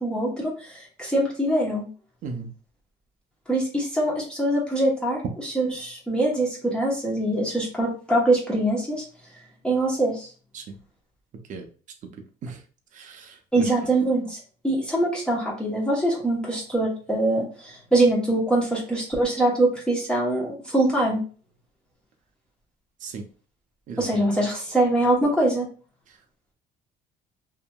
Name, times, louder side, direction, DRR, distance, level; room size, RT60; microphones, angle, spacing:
voice 1, 0.0-1.8 3.5-9.0 9.6-10.3 13.5-21.2 24.0-25.7, right 1 dB, 5° left, -4 dB, 0.9 m, -23 dB
voice 2, 12.9-13.7 23.0-23.2 23.9-24.0, right 4 dB, 50° right, 3 dB, 0.6 m, -36 dB
2.7 x 2.7 x 2.2 m, 0.39 s
cardioid pair, 110°, 17 cm